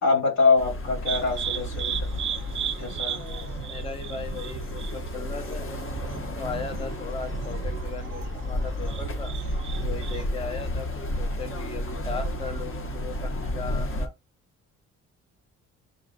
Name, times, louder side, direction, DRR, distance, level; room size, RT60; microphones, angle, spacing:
voice 1, 0.0-1.9 2.8-3.3, left 4 dB, 65° left, 2.1 m, -24 dB
sound 1, 0.6-14.1, left 1 dB, 45° left, 0.9 m, -32 dB
sound 2, 1.1-10.2, right 9 dB, 45° right, 0.5 m, -36 dB
voice 2, 3.1-5.7 6.4-9.3 9.8-14.1, left 4 dB, 20° left, 0.5 m, -38 dB
6.5 x 2.4 x 2.5 m
cardioid pair, 90°, 30 cm